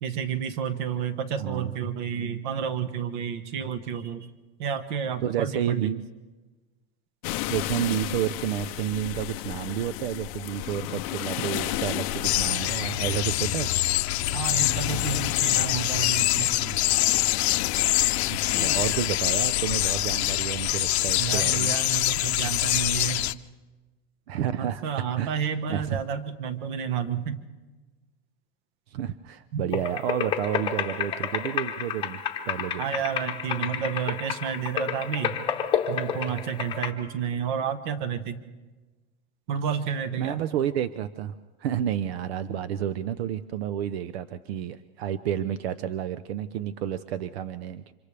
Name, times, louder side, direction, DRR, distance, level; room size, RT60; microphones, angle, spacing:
voice 1, 0.0-4.3 4.6-5.9 14.3-16.8 18.5-18.8 21.2-23.3 24.6-27.4 29.5-29.8 32.8-35.4 35.9-38.4 39.5-40.4, right 7 dB, 45° right, 11 dB, 1.2 m, -30 dB
voice 2, 1.4-1.7 5.2-6.0 7.5-13.7 18.3-21.7 24.3-25.3 25.7-26.0 28.9-32.2 32.5-32.8 40.2-41.3 41.6-47.9, right 10 dB, 75° right, 13 dB, 0.7 m, -30 dB
sound 1, 7.2-20.4, left 15 dB, 35° left, 0.5 m, -34 dB
sound 2, 12.2-23.3, left 16 dB, 85° left, 0.7 m, -25 dB
sound 3, 29.7-36.9, left 8 dB, 15° left, 1.0 m, -30 dB
30.0 x 26.0 x 3.4 m, 1.3 s
supercardioid pair, 175°, 32 cm